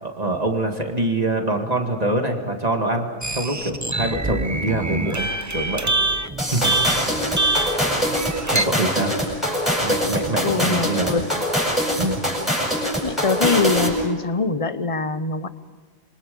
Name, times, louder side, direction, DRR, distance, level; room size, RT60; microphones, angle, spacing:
voice 1, 0.0-5.9 6.5-7.0 8.5-9.1 9.8-11.1 12.0-12.2, right 2 dB, 35° right, 3 dB, 2.1 m, -24 dB
sound 1, 3.2-8.7, right 2 dB, 15° right, 0.8 m, -25 dB
sound 2, 6.4-14.0, equal, ahead, 7.6 m, -23 dB
voice 2, 10.4-11.4 13.0-15.5, left 4 dB, 30° left, 13 dB, 0.9 m, -23 dB
27.5 x 24.0 x 5.3 m, 1.5 s
omnidirectional pair, 1.2 m